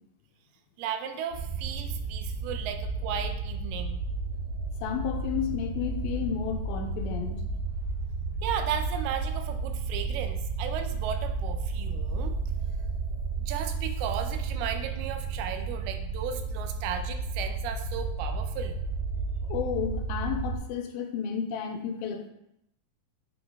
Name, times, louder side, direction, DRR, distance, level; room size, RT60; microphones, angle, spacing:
voice 1, 0.8-4.0 8.4-12.4 13.4-18.8, right 8 dB, 85° right, 7 dB, 2.6 m, -35 dB
sound 1, 1.3-20.6, right 4 dB, 50° right, 2.7 m, -32 dB
voice 2, 4.8-7.4 19.5-22.3, left 8 dB, 85° left, 4 dB, 2.4 m, -32 dB
8.4 x 3.9 x 3.5 m, 0.81 s
omnidirectional pair, 4.4 m